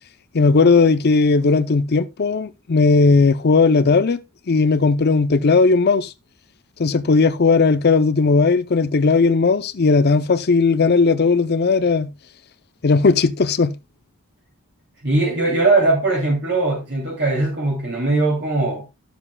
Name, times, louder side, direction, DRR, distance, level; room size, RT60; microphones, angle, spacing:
voice 1, 0.3-4.2 4.5-6.1 6.8-12.1 12.8-13.7, left 4 dB, 50° left, 0.5 m, -16 dB
voice 2, 15.0-18.9, right 2 dB, 50° right, 2.8 m, -20 dB
12.0 x 7.2 x 2.3 m
head